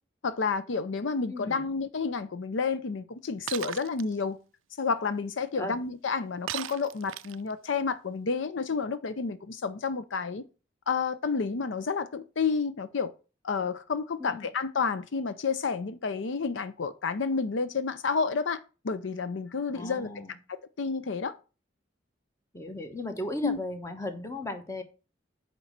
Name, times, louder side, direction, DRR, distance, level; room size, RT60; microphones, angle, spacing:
voice 1, 0.2-4.4 4.8-10.4 10.9-13.1 13.4-20.1 20.5-21.3 23.4-23.6, left 5 dB, 70° left, 0.5 m, -30 dB
voice 2, 1.3-1.7 5.6-5.8 14.2-14.5 19.7-20.3 22.5-24.8, left 1 dB, 15° left, 1.0 m, -36 dB
Shatter, 3.5-4.0 6.5-7.5, right 13 dB, 80° right, 0.3 m, -36 dB
9.0 x 3.2 x 6.5 m
head